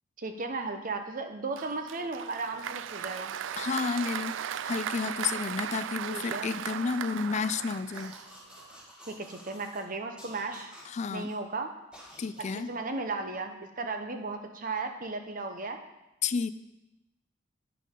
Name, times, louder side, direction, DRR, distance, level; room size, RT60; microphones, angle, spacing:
voice 1, 0.2-3.3 6.1-6.5 9.1-10.7 11.1-11.7 12.5-15.8, right 3 dB, 45° right, 6 dB, 0.9 m, -35 dB
Applause, 1.6-8.7, right 9 dB, 75° right, 0.3 m, -37 dB
voice 2, 3.6-4.4 4.6-8.1 10.9-11.3 12.2-12.7 16.2-16.5, left 5 dB, 40° left, 14 dB, 0.4 m, -31 dB
sound 1, 7.9-9.8 10.2-11.4 11.9-12.7, equal, 5° right, 1.8 m, -51 dB
10.5 x 9.2 x 3.8 m, 0.95 s
head